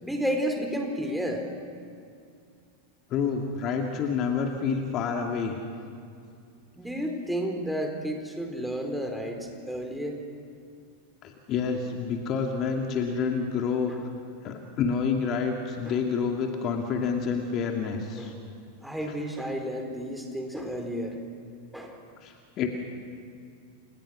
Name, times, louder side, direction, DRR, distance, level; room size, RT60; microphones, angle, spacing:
voice 1, 0.0-1.5 6.8-10.2 15.8-16.0 18.2-18.3 18.8-21.2 21.7-22.0, equal, ahead, 2 dB, 4.1 m, -31 dB
voice 2, 3.1-5.6 11.2-13.9 14.4-18.3 22.2-22.7, left 6 dB, 35° left, 2 dB, 2.5 m, -28 dB
30.0 x 28.0 x 6.4 m, 2.4 s
figure-of-eight pair, 90°, 0 cm